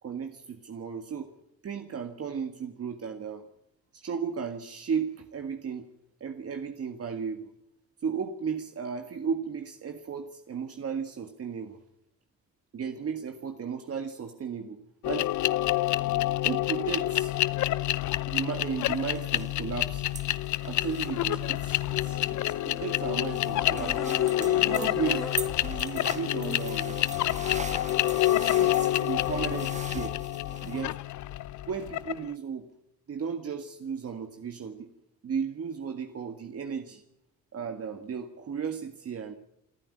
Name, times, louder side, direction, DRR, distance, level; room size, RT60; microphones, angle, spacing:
voice 1, 0.0-1.3 1.6-3.4 3.9-5.9 6.2-7.5 8.0-11.8 12.7-14.8 15.0-15.3 16.4-17.4 18.3-20.1 20.6-24.0 24.4-25.2 25.6-27.0 28.3-30.2 30.7-30.9 31.7-32.7 33.1-34.9 35.2-37.0 37.5-39.3, right 6 dB, 50° right, 6 dB, 1.7 m, -35 dB
sound 1, 15.0-32.3, left 14 dB, 70° left, 0.8 m, -28 dB
sound 2, 18.6-30.8, right 4 dB, 25° right, 1.6 m, -43 dB
sound 3, 22.6-27.9, equal, ahead, 1.4 m, -44 dB
28.0 x 11.0 x 9.7 m, 0.81 s
cardioid pair, 90°, 30 cm